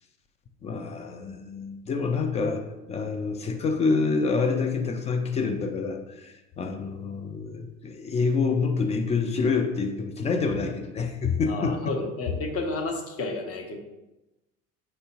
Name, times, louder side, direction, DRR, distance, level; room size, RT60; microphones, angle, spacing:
voice 1, 0.6-11.9, left 4 dB, 20° left, 5 dB, 0.3 m, -27 dB
voice 2, 11.5-13.8, left 2 dB, 35° left, 3 dB, 0.8 m, -31 dB
5.3 x 3.0 x 2.8 m, 1.0 s
figure-of-eight pair, 65°, 40 cm